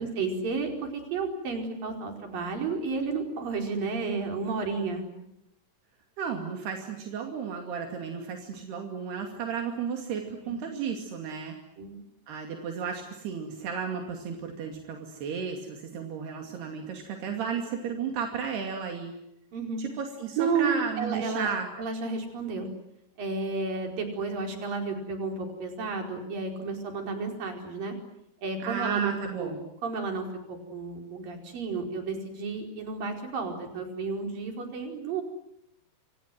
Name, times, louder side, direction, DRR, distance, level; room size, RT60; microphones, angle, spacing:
voice 1, 0.0-5.3 6.3-6.4 10.4-10.6 11.8-12.0 19.5-19.8 20.4-21.5 21.8-22.7 23.2-27.9 28.4-29.1 29.4-29.5 29.8-35.2, right 4 dB, 60° right, 3 dB, 6.3 m, -32 dB
voice 2, 6.2-11.6 12.3-19.1 19.8-21.7 28.6-29.6, right 6 dB, 80° right, 3 dB, 4.6 m, -33 dB
28.5 x 27.0 x 7.8 m, 0.79 s
omnidirectional pair, 4.6 m